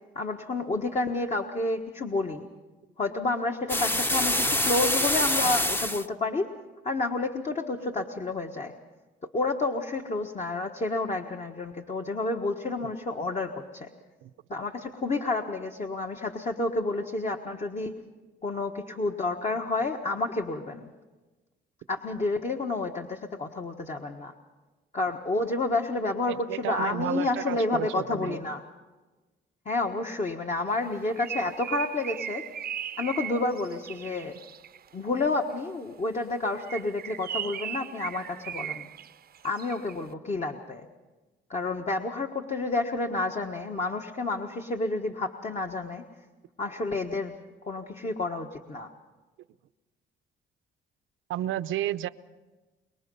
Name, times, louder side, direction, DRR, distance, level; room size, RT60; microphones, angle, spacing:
voice 1, 0.1-2.5 3.0-6.5 6.8-8.7 9.3-13.9 14.5-17.9 18.4-20.9 21.9-24.3 24.9-28.6 29.6-32.4 33.0-34.3 34.9-38.9 39.4-40.9 41.5-46.0 46.6-47.3 47.6-48.9, left 2 dB, 35° left, 2 dB, 1.4 m, -30 dB
sound 1, 3.7-6.1, left 1 dB, 10° left, 0.8 m, -25 dB
voice 2, 26.3-28.4 51.3-52.1, right 13 dB, 85° right, 13 dB, 0.7 m, -32 dB
Bird, 30.8-34.9 36.5-40.0, right 9 dB, 50° right, 0.6 m, -38 dB
25.0 x 22.0 x 5.5 m, 1.2 s
cardioid pair, 90°, 20 cm